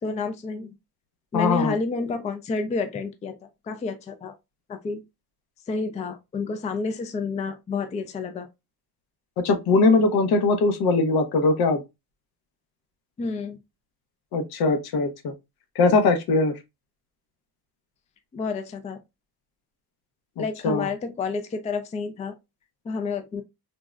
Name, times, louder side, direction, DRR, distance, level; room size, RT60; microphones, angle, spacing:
voice 1, 0.0-0.7 1.3-3.4 3.6-4.3 4.7-5.0 5.7-8.5 13.2-13.6 18.3-19.0 20.4-22.3 22.8-23.4, left 4 dB, 20° left, 0.3 m, -29 dB
voice 2, 1.3-1.7 9.4-11.8 14.3-15.3 15.8-16.5 20.6-20.9, left 3 dB, 75° left, 0.8 m, -21 dB
3.6 x 2.0 x 2.3 m
cardioid pair, 115°, 38 cm